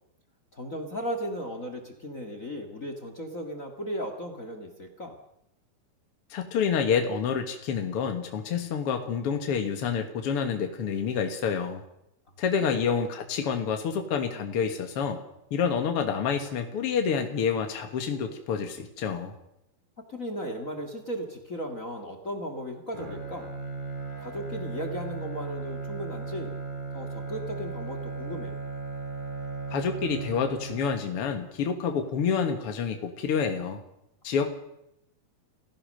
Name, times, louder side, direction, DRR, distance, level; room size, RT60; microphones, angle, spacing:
voice 1, 0.5-5.1 12.6-12.8 20.1-23.5 24.2-26.6 26.9-28.5, equal, 40° left, 6 dB, 1.1 m, -36 dB
voice 2, 6.3-11.8 12.4-15.2 15.5-19.3 29.7-33.8 34.2-34.5, left 6 dB, 60° left, 6 dB, 1.5 m, -28 dB
Bowed string instrument, 22.9-31.3, right 4 dB, 15° right, 2.8 m, -36 dB
28.5 x 16.0 x 6.6 m, 0.84 s
omnidirectional pair, 4.7 m